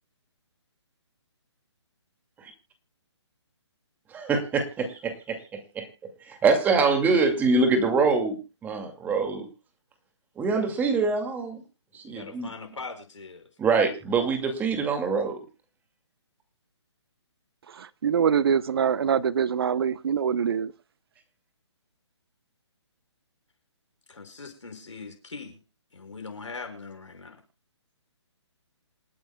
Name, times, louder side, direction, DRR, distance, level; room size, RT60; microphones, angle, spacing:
voice 1, 4.1-5.4 5.8-5.9 6.4-8.4 8.6-9.5 10.4-11.6 12.1-12.5 13.6-15.4, right 4 dB, 10° right, 2.3 m, -24 dB
voice 2, 12.1-13.4 24.1-25.6 25.9-27.4, left 4 dB, 85° left, 5.6 m, -41 dB
voice 3, 18.0-20.7, right 7 dB, 55° right, 0.9 m, -24 dB
27.5 x 9.2 x 2.3 m
hypercardioid pair, 150°, 15 cm